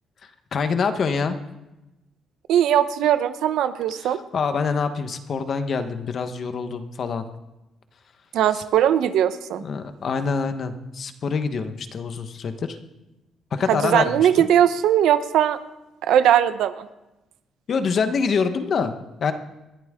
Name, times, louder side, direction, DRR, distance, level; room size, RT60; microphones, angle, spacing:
voice 1, 0.2-1.4 4.0-7.2 8.5-8.6 9.6-12.8 13.5-14.5 17.7-18.9 19.2-19.3, left 5 dB, 45° left, 8 dB, 1.2 m, -25 dB
voice 2, 2.5-4.2 8.3-9.6 13.7-15.6 16.0-16.9, right 10 dB, 80° right, 11 dB, 0.9 m, -19 dB
21.0 x 15.0 x 3.7 m, 1.0 s
cardioid pair, 140°, 0 cm